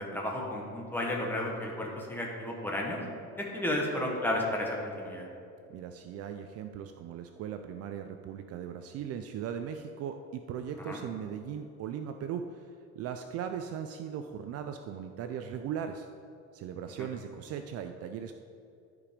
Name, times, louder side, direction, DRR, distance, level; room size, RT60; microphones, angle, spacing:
voice 1, 0.0-3.0 3.4-5.3 10.8-11.0 17.0-17.1, left 1 dB, 5° left, -2 dB, 1.3 m, -33 dB
voice 2, 5.7-12.7 13.0-16.1 16.5-18.3, right 8 dB, 50° right, 7 dB, 0.4 m, -38 dB
13.0 x 5.1 x 5.1 m, 2.6 s
cardioid pair, 165°, 32 cm